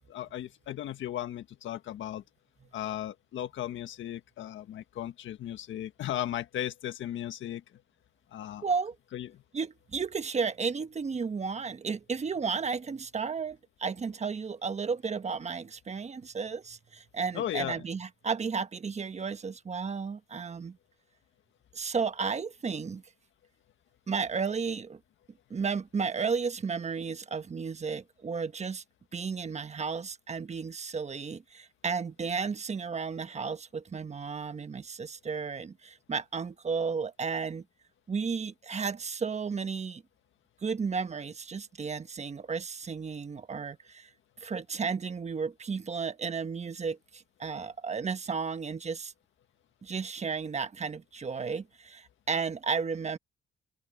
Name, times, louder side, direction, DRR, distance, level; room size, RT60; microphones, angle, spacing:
voice 1, 0.1-2.2 2.7-7.6 8.3-8.6 9.1-9.4 17.3-17.8, left 12 dB, 75° left, 1.6 m, -36 dB
voice 2, 8.6-8.9 9.5-20.8 21.7-23.0 24.1-25.0 25.5-28.8 29.1-37.6 38.1-40.0 40.6-44.1 44.4-49.1 49.8-53.2, right 5 dB, 35° right, 1.3 m, -33 dB
cardioid pair, 90°, 20 cm